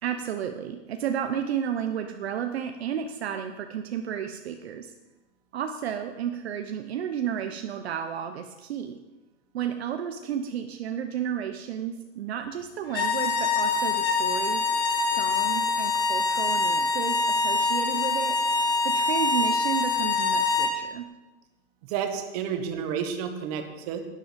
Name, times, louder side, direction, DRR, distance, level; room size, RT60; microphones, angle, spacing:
voice 1, 0.0-4.9 5.5-9.0 9.5-14.7 15.0-18.4 18.8-21.1, right 8 dB, 55° right, 6 dB, 0.9 m, -32 dB
sound 1, 12.9-20.8, left 4 dB, 10° left, 0.6 m, -25 dB
voice 2, 21.8-24.0, right 7 dB, 30° right, 6 dB, 1.3 m, -31 dB
11.5 x 10.0 x 5.2 m, 1.1 s
hypercardioid pair, 165°, 37 cm